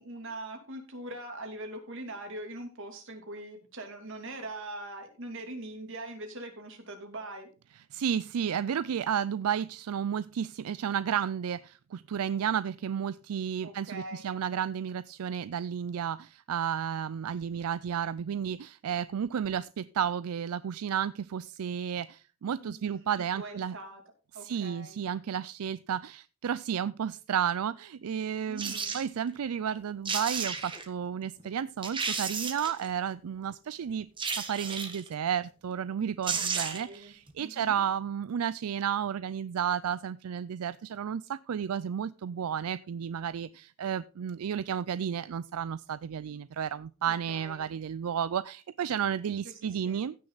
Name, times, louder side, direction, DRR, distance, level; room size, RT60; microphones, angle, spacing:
voice 1, 0.0-7.5 13.6-14.4 22.6-24.0 24.3-25.0 28.5-29.0 36.3-37.1 37.4-37.8 47.3-47.7 49.4-50.0, right 1 dB, 60° right, 4 dB, 2.9 m, -42 dB
voice 2, 7.9-23.7 24.4-50.2, right 8 dB, 80° right, 16 dB, 0.4 m, -32 dB
sound 1, 28.6-29.0 29.8-29.9 30.0-30.9 31.4-31.5 31.8-32.9 34.2-35.1 35.9-36.0 36.2-37.0 37.3-37.4, right 5 dB, 25° right, 1.5 m, -33 dB
15.5 x 6.5 x 4.0 m, 0.35 s
head